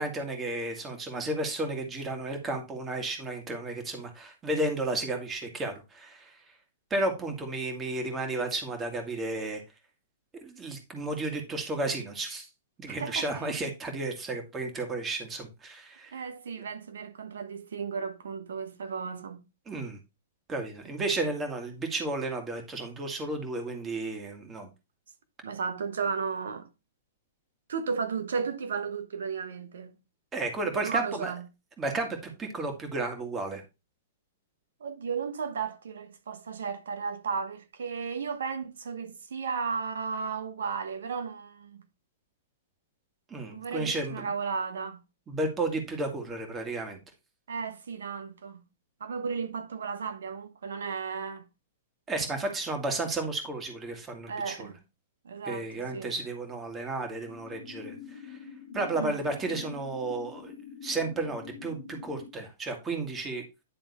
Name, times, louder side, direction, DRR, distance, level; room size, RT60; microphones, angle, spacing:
voice 1, 0.0-6.3 6.9-9.6 10.4-12.5 12.8-16.2 19.7-20.0 20.5-24.7 30.3-31.3 31.8-33.6 43.3-44.3 45.3-47.0 52.1-54.6 55.4-58.0 58.3-58.4 58.7-60.5 60.8-63.4, right 2 dB, 20° right, 2.0 m, -33 dB
voice 2, 12.9-13.6 16.1-19.4 25.4-26.7 27.7-30.0 30.7-31.4 34.8-41.8 43.5-45.0 47.5-48.6 49.0-51.4 54.3-54.8 55.2-56.1 58.9-59.2, right 5 dB, 75° right, 1.2 m, -34 dB
sound 1, 57.3-62.3, left 7 dB, 70° left, 1.2 m, -45 dB
10.5 x 3.6 x 4.2 m
hypercardioid pair, 125°, 0 cm